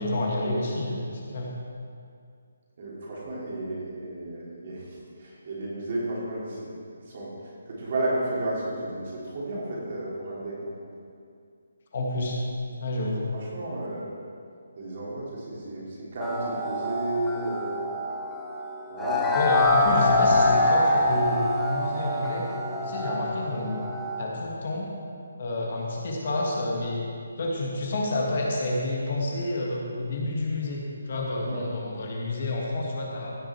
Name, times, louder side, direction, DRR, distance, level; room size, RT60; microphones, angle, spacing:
voice 1, 0.0-1.5 11.9-12.4 12.8-13.2 19.3-22.5 22.8-23.8 24.2-24.9 25.4-27.1 27.4-33.4, left 2 dB, 45° left, -2 dB, 1.7 m, -29 dB
voice 2, 2.8-4.8 5.2-6.7 7.1-7.3 7.7-10.7 13.3-14.1 14.8-17.9 18.9-19.3 20.2-20.4 31.4-31.7, right 1 dB, 40° right, -6 dB, 3.0 m, -32 dB
sound 1, 16.2-24.2, left 2 dB, 5° left, 0.7 m, -25 dB
15.5 x 6.2 x 4.5 m, 2.3 s
hypercardioid pair, 170°, 0 cm